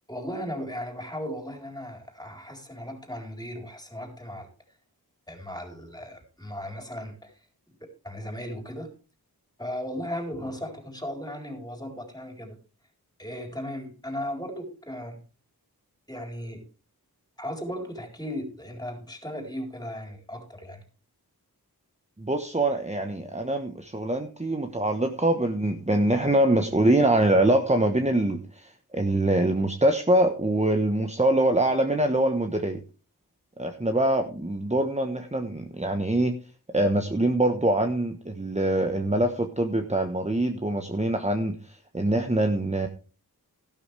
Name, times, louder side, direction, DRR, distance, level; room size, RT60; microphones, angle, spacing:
voice 1, 0.1-4.5 5.3-7.3 7.8-8.9 9.6-12.6 13.2-15.2 16.1-16.7 17.4-20.8, equal, 10° left, 3 dB, 4.0 m, -36 dB
voice 2, 22.2-32.8 33.6-36.4 36.7-42.9, right 1 dB, 20° right, 5 dB, 1.2 m, -24 dB
13.0 x 12.0 x 3.4 m, 0.35 s
wide cardioid pair, 45°, 37 cm